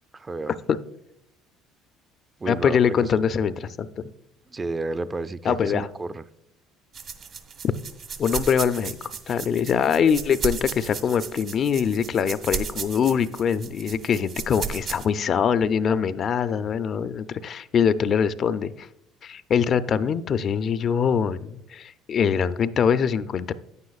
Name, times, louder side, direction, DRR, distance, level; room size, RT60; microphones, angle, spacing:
voice 1, 0.1-0.5 2.4-2.8 3.1-3.2 4.5-6.2, right 3 dB, 25° right, 13 dB, 0.4 m, -31 dB
voice 2, 2.5-3.9 5.4-5.9 8.2-9.0 9.3-18.9 19.2-23.5, left 7 dB, 50° left, 13 dB, 0.4 m, -23 dB
sound 1, 6.9-15.1, right 6 dB, 55° right, 1.0 m, -34 dB
9.5 x 9.2 x 2.4 m, 0.78 s
supercardioid pair, 75°, 0 cm